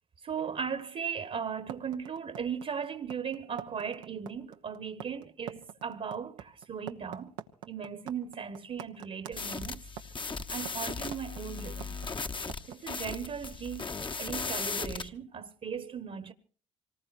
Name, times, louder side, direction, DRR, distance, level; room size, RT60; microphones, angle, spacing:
voice 1, 0.2-7.3 7.7-9.8 10.5-12.0 12.7-13.9 14.2-16.3, right 7 dB, 45° right, 1.4 m, -37 dB
sound 1, 1.7-12.7, right 10 dB, 85° right, 1.0 m, -44 dB
sound 2, 9.3-15.1, left 4 dB, 30° left, 1.1 m, -37 dB
26.5 x 19.5 x 2.6 m
hypercardioid pair, 50°, 16 cm